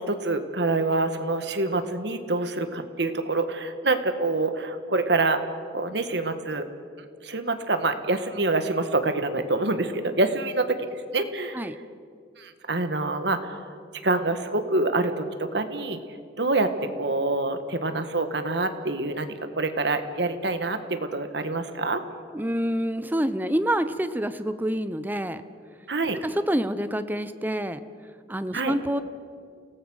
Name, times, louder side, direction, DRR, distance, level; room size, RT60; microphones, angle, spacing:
voice 1, 0.0-5.4 5.7-6.7 7.2-11.6 12.4-13.7 14.0-16.0 16.4-22.0 25.9-26.2 28.5-28.7, right 2 dB, 70° right, 8 dB, 1.7 m, -26 dB
voice 2, 22.3-25.4 26.1-27.8 28.3-29.0, equal, 10° right, 11 dB, 0.8 m, -27 dB
29.0 x 18.0 x 6.4 m, 2.2 s
head